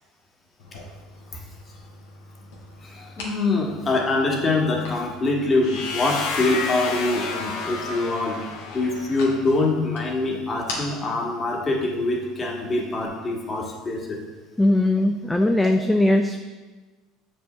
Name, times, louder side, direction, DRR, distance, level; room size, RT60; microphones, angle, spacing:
sound 1, 0.6-13.1, left 2 dB, 85° left, 1.5 m, -42 dB
voice 1, 2.8-8.4 8.7-14.2, left 2 dB, 30° left, -1 dB, 1.6 m, -24 dB
sound 2, 5.6-9.5, left 4 dB, 70° left, 1.0 m, -31 dB
voice 2, 14.6-16.4, left 1 dB, 10° left, 5 dB, 0.4 m, -20 dB
6.9 x 5.5 x 3.4 m, 1.3 s
hypercardioid pair, 85°, 0 cm